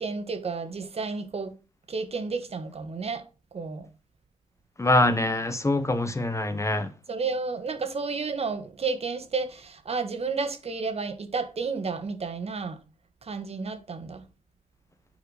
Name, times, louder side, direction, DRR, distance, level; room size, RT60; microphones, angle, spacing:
voice 1, 0.0-1.5 1.9-3.2 3.5-3.9 7.1-12.8 13.2-14.2, right 4 dB, 50° right, 1.6 m, -31 dB
voice 2, 4.8-6.9, left 2 dB, 20° left, 1.0 m, -24 dB
7.4 x 4.7 x 5.0 m
cardioid pair, 60°, 13 cm